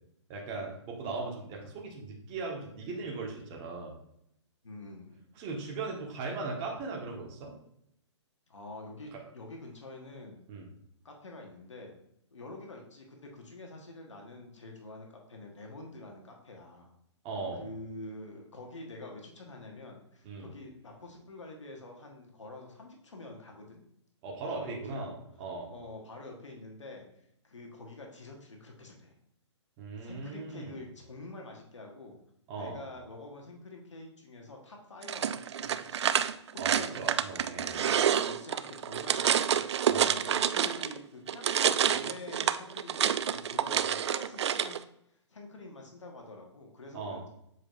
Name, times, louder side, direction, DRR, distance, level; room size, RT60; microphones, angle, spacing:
voice 1, 0.3-4.0 5.4-7.5 10.5-10.7 17.2-17.6 20.2-20.5 24.2-25.7 29.8-30.8 32.5-32.8 36.6-37.8 39.9-40.1 46.9-47.2, right 3 dB, 30° right, -1 dB, 1.6 m, -38 dB
voice 2, 4.6-5.2 8.5-10.4 11.0-12.0 12.3-16.9 17.5-23.8 24.5-25.1 25.7-27.1 27.4-29.1 30.0-32.2 32.5-36.2 36.5-37.0 37.7-39.7 40.1-47.3, left 2 dB, 80° left, 1 dB, 1.5 m, -47 dB
sound 1, 35.0-41.0 41.3-44.8, right 9 dB, 65° right, 0.4 m, -28 dB
7.4 x 4.8 x 2.6 m, 0.75 s
hypercardioid pair, 130°, 15 cm